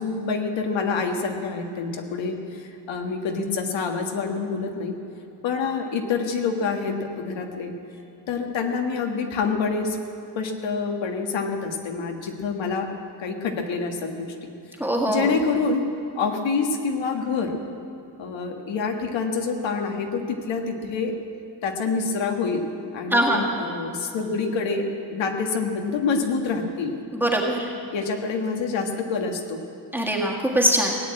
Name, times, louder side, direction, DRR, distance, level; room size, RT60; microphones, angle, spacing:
voice 1, 0.0-5.0 5.4-7.7 8.3-10.0 10.4-12.9 13.2-14.3 15.1-15.9 16.2-17.6 18.2-21.2 21.6-22.7 22.9-26.9 27.9-29.6, left 4 dB, 75° left, 3 dB, 1.7 m, -27 dB
voice 2, 14.8-15.4 23.1-23.5 27.1-27.7 29.9-31.0, right 1 dB, 5° right, -2 dB, 1.7 m, -22 dB
17.5 x 8.7 x 8.7 m, 2.7 s
cardioid pair, 160°, 45 cm